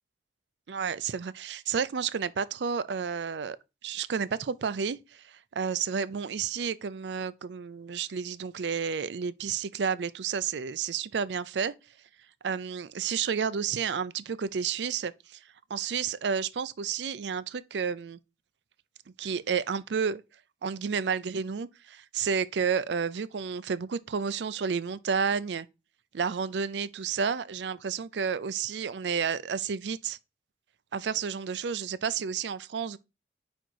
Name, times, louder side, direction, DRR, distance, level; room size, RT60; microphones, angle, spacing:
voice 1, 0.7-3.6 3.8-11.7 12.4-15.4 15.7-18.2 19.2-20.2 20.6-25.7 26.1-30.2 30.9-33.0, right 6 dB, 85° right, 0.5 m, -31 dB
5.0 x 4.3 x 4.6 m
head